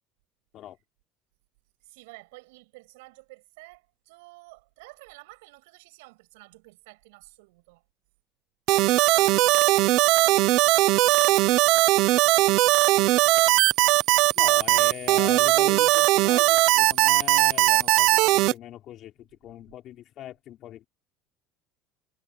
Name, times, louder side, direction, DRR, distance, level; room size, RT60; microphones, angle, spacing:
voice 1, 1.8-7.8 8.7-11.7, right 24 dB, 90° right, 6.4 m, -51 dB
sound 1, 8.7-18.5, right 18 dB, 60° right, 0.6 m, -19 dB
voice 2, 14.4-20.9, left 12 dB, 45° left, 5.2 m, -40 dB
cardioid pair, 140°, 0 cm